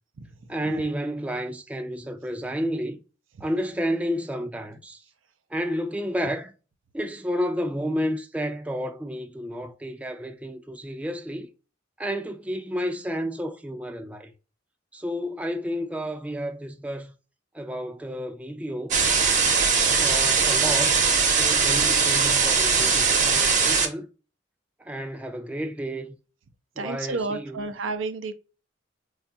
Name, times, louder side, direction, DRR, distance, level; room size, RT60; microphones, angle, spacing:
voice 1, 0.5-3.0 3.4-5.0 5.5-6.5 6.9-11.5 12.0-14.3 14.9-17.1 17.5-19.0 20.0-21.0 21.4-24.1 24.8-26.2 26.8-27.7, equal, 5° right, 0.4 m, -31 dB
sound 1, 18.9-23.9, right 5 dB, 40° right, 0.8 m, -20 dB
voice 2, 26.8-28.3, right 3 dB, 85° right, 0.5 m, -30 dB
4.2 x 2.3 x 2.6 m
head